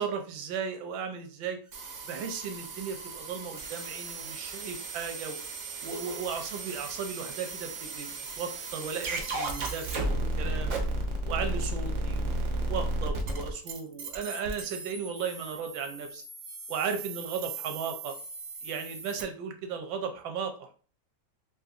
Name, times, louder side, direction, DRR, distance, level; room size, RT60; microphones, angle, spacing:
voice 1, 0.0-1.6 2.1-5.4 5.8-8.1 8.4-10.8 11.2-16.2 16.7-18.2 18.6-20.7, right 6 dB, 90° right, 5 dB, 1.4 m, -36 dB
sound 1, 1.7-19.2, right 2 dB, 70° right, 0.7 m, -35 dB
3.8 x 2.8 x 2.4 m, 0.40 s
omnidirectional pair, 2.0 m